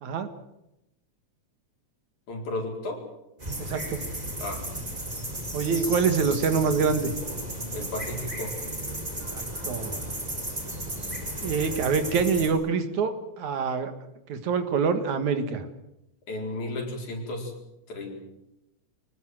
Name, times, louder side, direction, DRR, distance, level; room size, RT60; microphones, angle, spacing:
voice 1, 2.3-3.0 4.4-4.6 7.7-8.6 16.3-17.5 17.9-18.2, left 2 dB, 85° left, 1 dB, 5.9 m, -33 dB
sound 1, 3.4-12.5, right 1 dB, 15° right, 4.2 m, -34 dB
voice 2, 3.6-4.0 5.5-7.1 9.3-10.0 11.4-13.9 14.3-15.7, right 5 dB, 75° right, 9 dB, 3.1 m, -26 dB
24.0 x 19.5 x 7.8 m, 0.88 s
omnidirectional pair, 3.3 m